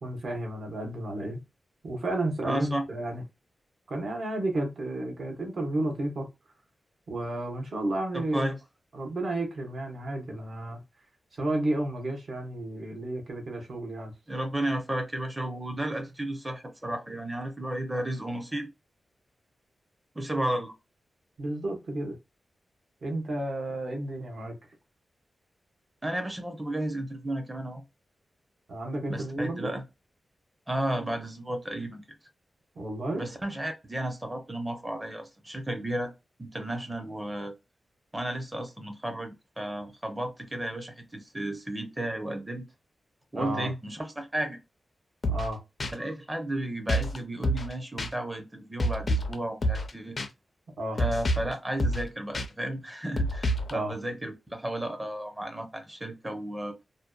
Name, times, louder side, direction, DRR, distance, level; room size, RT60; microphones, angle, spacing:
voice 1, 0.0-1.4 1.8-3.2 3.9-6.3 7.1-8.5 8.9-10.8 11.3-14.1 21.4-22.2 23.0-24.6 28.7-29.8 32.8-33.2 43.3-43.7 45.3-45.6 50.8-51.0 53.7-53.9, right 1 dB, 60° right, 0.8 m, -32 dB
voice 2, 2.4-2.8 8.1-8.6 14.3-18.7 20.1-20.7 26.0-27.8 29.1-29.8 30.7-32.0 33.1-36.1 36.4-37.5 38.1-42.6 43.3-44.6 45.9-50.2 51.0-56.7, right 1 dB, 15° right, 0.6 m, -33 dB
sound 1, 45.2-45.5 45.8-45.9 46.9-47.2 47.4-47.7 48.0-48.1 48.8-49.3 49.6-49.9 50.2-50.3 51.0-51.5 51.8-52.1 52.3-52.5 53.2-53.7, equal, 40° left, 0.4 m, -27 dB
2.6 x 2.1 x 2.2 m
wide cardioid pair, 150°, 0 cm